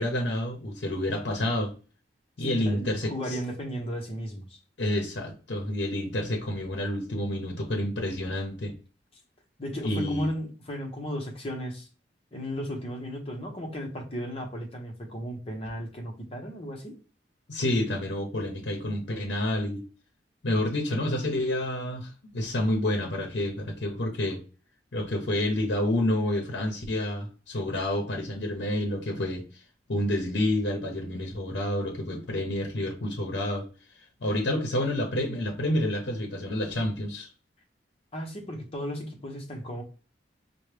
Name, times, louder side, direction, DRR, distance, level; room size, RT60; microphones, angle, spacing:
voice 1, 0.0-1.7 2.4-3.1 4.8-8.7 9.8-10.3 17.5-19.8 20.4-24.4 24.9-29.5 29.9-33.7 34.2-37.3, left 1 dB, 80° left, 0.8 m, -29 dB
voice 2, 2.5-4.6 9.6-11.9 12.3-17.0 38.1-39.8, equal, 35° left, 0.8 m, -35 dB
4.6 x 2.2 x 3.2 m
head